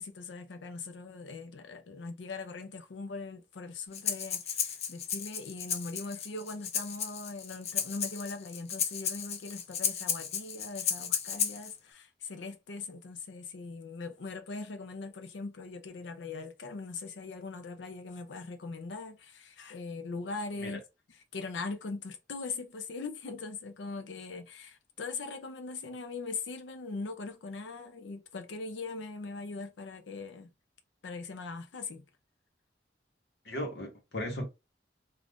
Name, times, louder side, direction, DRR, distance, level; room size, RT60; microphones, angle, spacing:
voice 1, 0.0-20.8 21.1-30.5 31.0-32.0, left 4 dB, 85° left, 0.5 m, -41 dB
Breathing, 3.9-11.7, left 7 dB, 35° left, 0.4 m, -34 dB
voice 2, 33.4-34.5, left 1 dB, 70° left, 1.1 m, -36 dB
2.5 x 2.4 x 3.4 m
head